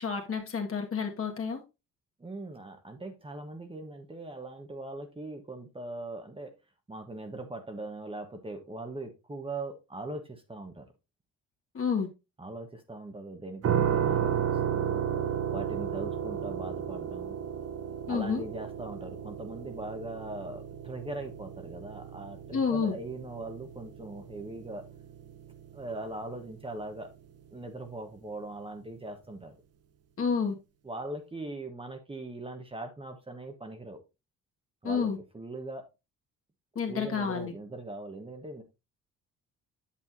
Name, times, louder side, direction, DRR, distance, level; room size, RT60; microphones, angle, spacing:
voice 1, 0.0-1.6 11.7-12.1 18.1-18.4 22.5-23.0 30.2-30.5 34.8-35.2 36.8-37.5, left 6 dB, 45° left, 1.9 m, -29 dB
voice 2, 2.2-6.5 6.9-10.9 12.4-15.0 15.5-17.4 18.1-24.9 25.7-27.1 27.5-29.5 30.8-34.0 34.8-35.1 35.3-35.8 36.9-38.6, right 2 dB, 20° right, 1.2 m, -40 dB
sound 1, 13.6-26.5, right 9 dB, 55° right, 0.9 m, -33 dB
8.5 x 7.1 x 2.7 m
cardioid pair, 90°, 30 cm